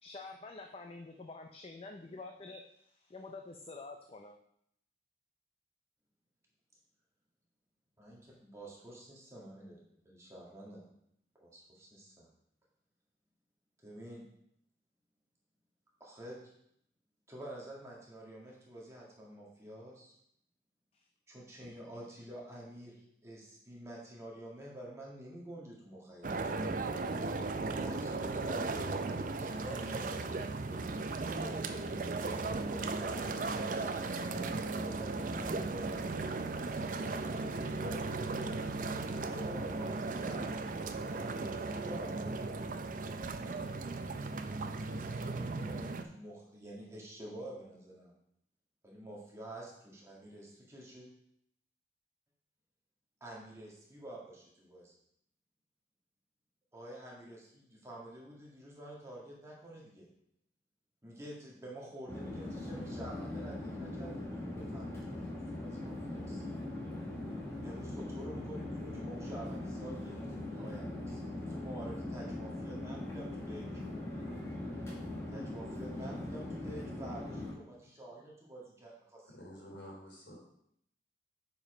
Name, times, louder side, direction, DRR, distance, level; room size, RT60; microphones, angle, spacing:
voice 1, 0.0-4.4 20.9-21.1, left 3 dB, 30° left, 3 dB, 0.5 m, -48 dB
voice 2, 8.0-10.8 11.4-12.3 13.8-14.2 16.0-16.5 17.3-20.1 21.3-26.4 27.8-31.6 32.1-38.8 39.3-42.8 44.9-48.1 48.8-51.1 53.2-54.9 56.7-60.1 61.0-66.4 67.6-73.8 75.3-79.3, right 1 dB, 15° right, -4 dB, 1.8 m, -49 dB
sound 1, 26.2-46.0, right 3 dB, 45° right, 0.5 m, -36 dB
Chatter / Fixed-wing aircraft airplane, 62.1-77.5, left 1 dB, 15° left, 1.7 m, -41 dB
voice 3, 79.2-80.4, equal, 80° left, -2 dB, 3.2 m, -50 dB
7.1 x 5.1 x 5.0 m, 0.72 s
head